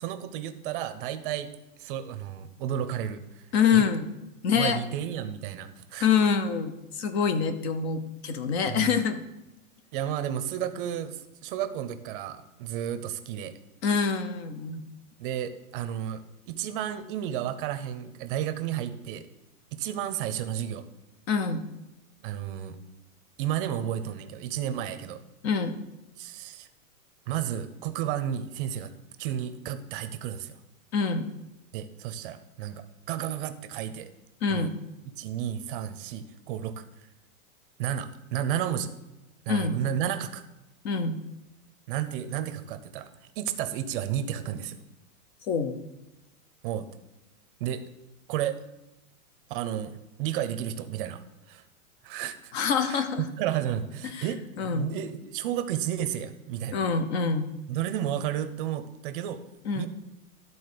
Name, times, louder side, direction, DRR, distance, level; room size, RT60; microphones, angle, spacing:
voice 1, 0.0-1.5 1.8-3.8 4.5-6.1 8.7-9.0 9.9-13.5 15.2-19.3 19.7-20.8 22.2-22.8 23.4-25.2 26.2-26.7 27.3-28.9 29.2-30.6 31.7-34.1 34.5-34.7 35.2-36.8 37.8-38.9 39.5-40.4 41.9-43.1 43.4-44.8 46.6-46.9 47.6-47.8 48.3-48.6 49.5-51.2 51.5-51.6 52.0-52.5 52.9-56.8 57.7-59.4 59.7-59.9, right 10 dB, 35° right, 10 dB, 0.6 m, -32 dB
voice 2, 3.5-4.1 4.4-4.8 6.0-9.2 13.8-14.8 21.3-21.6 25.4-25.7 30.9-31.3 34.4-34.7 39.5-39.8 40.8-41.2 45.5-45.9 52.5-53.2 54.0-54.2 54.6-54.9 56.7-57.5 59.6-59.9, left 6 dB, 45° left, 10 dB, 0.9 m, -26 dB
12.0 x 4.2 x 6.7 m, 0.97 s
supercardioid pair, 150°, 45 cm